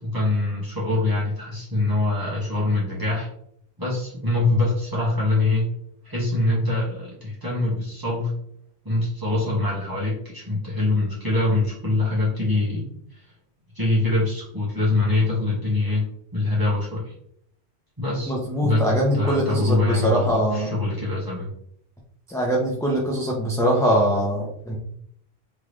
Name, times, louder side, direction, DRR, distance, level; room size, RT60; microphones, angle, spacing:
voice 1, 0.0-3.3 3.8-5.7 6.0-8.3 8.8-12.9 13.7-16.0 16.3-17.1 18.0-18.3 18.6-21.5, left 2 dB, 20° right, -6 dB, 1.9 m, -24 dB
voice 2, 18.3-20.7 22.3-24.8, equal, 5° left, -4 dB, 0.7 m, -22 dB
3.8 x 3.6 x 3.2 m, 0.69 s
omnidirectional pair, 1.1 m